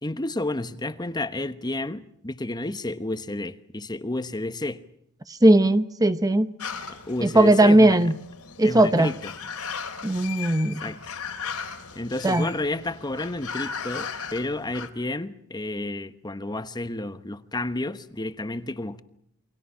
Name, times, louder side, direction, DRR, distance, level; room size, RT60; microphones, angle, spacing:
voice 1, 0.0-4.8 7.1-8.0 8.6-9.3 10.8-11.0 11.9-19.0, left 2 dB, 20° left, 1.0 m, -31 dB
voice 2, 5.3-6.5 7.2-8.1 8.6-9.1 10.0-10.8 12.2-12.5, right 1 dB, 15° right, 0.9 m, -18 dB
sound 1, 6.6-14.9, left 6 dB, 80° left, 3.1 m, -37 dB
29.0 x 24.0 x 5.7 m
head